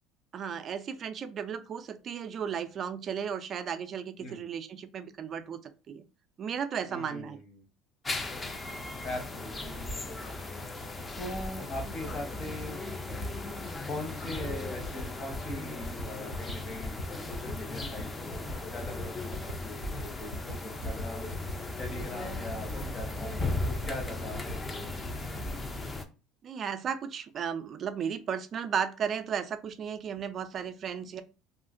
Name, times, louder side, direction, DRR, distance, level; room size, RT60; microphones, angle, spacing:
voice 1, 0.3-6.1 6.4-7.4 26.4-31.2, right 7 dB, 45° right, 10 dB, 0.3 m, -35 dB
voice 2, 6.9-7.6 9.0-10.3 11.2-12.8 13.9-18.1 18.6-21.3 21.8-23.3 23.6-25.2, left 1 dB, 40° left, 3 dB, 1.1 m, -41 dB
sound 1, 8.0-26.0, left 2 dB, 20° left, 0.4 m, -37 dB
sound 2, 14.3-14.5 14.8-15.0 15.3-15.5 15.8-16.0 16.3-16.5 16.8-17.0 17.3-17.5 17.8-18.0 18.3-18.5 18.8-19.0 19.3-19.5 19.8-20.0 20.3-20.5 20.8-21.0 21.3-21.5 21.8-22.0 22.3-22.5 22.8-23.0 23.3-23.5 23.8-24.0 24.3-24.5, left 1 dB, 85° left, 0.7 m, -39 dB
2.7 x 2.4 x 2.5 m, 0.31 s
supercardioid pair, 105°, 0 cm